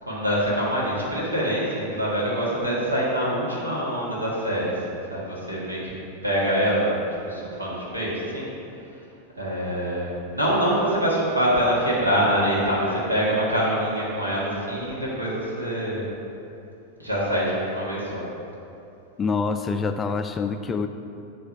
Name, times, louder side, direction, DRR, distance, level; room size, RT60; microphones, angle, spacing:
voice 1, 0.0-5.9 6.2-8.5 9.0-9.1 9.3-16.1 17.0-18.3, equal, 80° right, -6 dB, 1.6 m, -25 dB
voice 2, 19.2-20.9, left 4 dB, 20° left, 8 dB, 0.3 m, -26 dB
7.8 x 3.3 x 5.8 m, 2.8 s
figure-of-eight pair, 90°, 0 cm